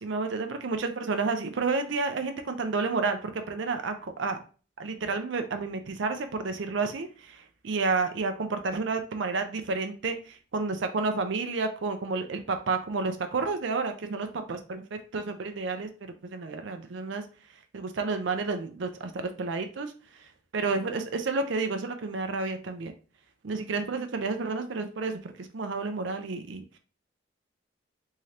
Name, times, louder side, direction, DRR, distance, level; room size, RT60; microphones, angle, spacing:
voice 1, 0.0-4.4 4.8-17.2 17.7-19.9 20.5-22.9 23.4-26.8, right 4 dB, 65° right, 7 dB, 0.5 m, -30 dB
3.6 x 3.2 x 2.8 m, 0.37 s
head